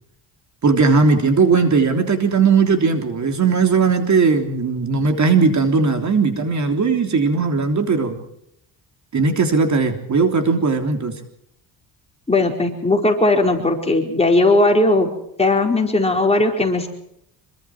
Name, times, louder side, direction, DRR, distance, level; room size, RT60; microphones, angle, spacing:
voice 1, 0.6-8.2 9.1-11.2, right 4 dB, 40° right, 5 dB, 3.5 m, -18 dB
voice 2, 12.3-15.1 15.4-16.9, left 2 dB, 15° left, 2 dB, 4.6 m, -17 dB
26.5 x 24.0 x 4.7 m, 0.76 s
cardioid pair, 125°, 43 cm